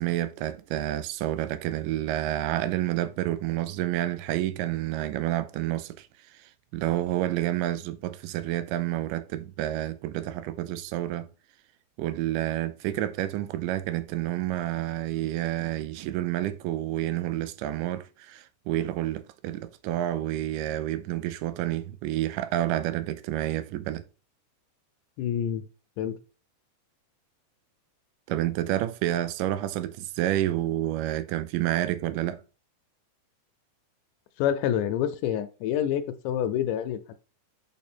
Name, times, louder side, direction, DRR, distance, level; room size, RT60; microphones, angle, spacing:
voice 1, 0.0-6.1 6.3-11.3 12.0-24.0 28.3-32.4, right 13 dB, 85° right, 2.1 m, -29 dB
voice 2, 25.2-25.7 26.0-26.2 34.4-37.1, left 10 dB, 80° left, 2.0 m, -27 dB
6.6 x 3.4 x 4.3 m
omnidirectional pair, 3.7 m